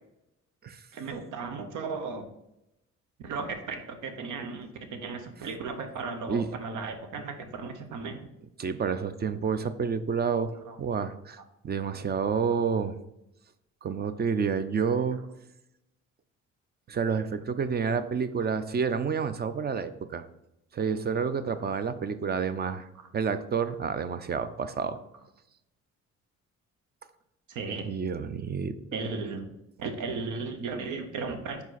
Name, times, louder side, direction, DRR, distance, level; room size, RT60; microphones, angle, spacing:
voice 1, 0.9-2.3 3.2-8.2 10.6-10.8 14.8-15.2 22.7-22.8 27.5-27.9 28.9-29.5 29.8-31.6, right 4 dB, 80° right, 7 dB, 0.9 m, -35 dB
voice 2, 8.6-11.4 11.6-13.0 13.8-15.2 16.9-20.2 20.7-22.9 23.1-25.0 27.8-28.7, right 6 dB, 35° right, 12 dB, 0.5 m, -29 dB
5.1 x 4.8 x 4.0 m, 0.86 s
cardioid pair, 90°, 30 cm